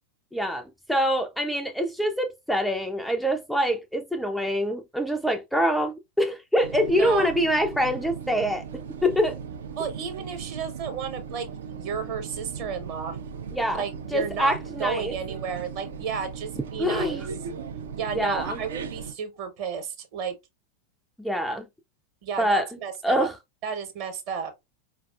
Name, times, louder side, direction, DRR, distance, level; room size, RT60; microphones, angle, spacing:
voice 1, 0.3-8.7 9.0-9.4 13.5-13.8 14.1-15.2 16.8-17.3 18.1-18.6 21.2-21.7 22.4-22.7 23.0-23.3, equal, ahead, 0.3 m, -25 dB
sound 1, 6.6-19.1, right 6 dB, 60° right, 0.4 m, -37 dB
voice 2, 7.0-7.3 9.8-13.2 13.8-17.3 18.0-20.3 22.2-23.3 23.6-24.5, right 6 dB, 45° right, 1.0 m, -32 dB
4.6 x 2.3 x 2.3 m
figure-of-eight pair, 90°, 0 cm